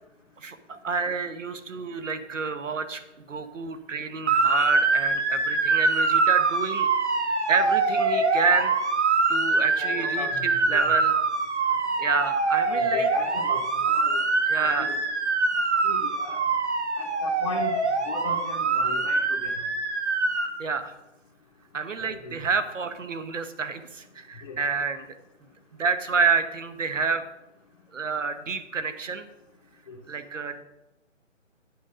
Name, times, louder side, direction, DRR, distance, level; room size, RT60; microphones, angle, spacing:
voice 1, 0.4-3.0 3.3-6.9 7.2-8.8 9.3-11.1 12.0-13.1 14.5-14.9 20.6-20.9 21.7-25.1 25.7-27.2 27.9-29.3 30.1-30.6, right 5 dB, 80° right, 10 dB, 1.1 m, -28 dB
Motor vehicle (road) / Siren, 4.3-20.5, right 3 dB, 60° right, 1.6 m, -24 dB
voice 2, 9.6-11.0 12.7-14.2 14.6-15.0 15.8-16.4 17.0-17.7 18.0-19.5 22.0-22.3 24.4-24.6 29.9-30.0, left 4 dB, 30° left, -3 dB, 0.8 m, -37 dB
8.6 x 5.1 x 6.1 m, 0.96 s
figure-of-eight pair, 160°, 37 cm